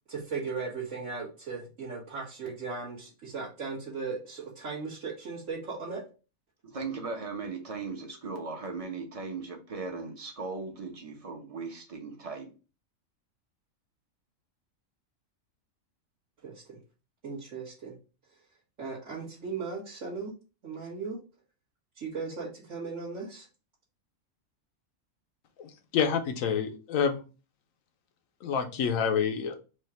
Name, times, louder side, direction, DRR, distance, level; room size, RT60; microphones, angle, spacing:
voice 1, 0.1-6.0 16.4-16.8 17.2-17.9 18.8-20.3 20.6-21.2 22.0-23.5, right 4 dB, 70° right, -9 dB, 2.0 m, -37 dB
voice 2, 6.6-12.5, right 4 dB, 30° right, 3 dB, 0.9 m, -38 dB
voice 3, 25.6-27.2 28.4-29.6, left 7 dB, 75° left, 6 dB, 1.2 m, -28 dB
4.8 x 2.5 x 4.4 m, 0.33 s
omnidirectional pair, 1.4 m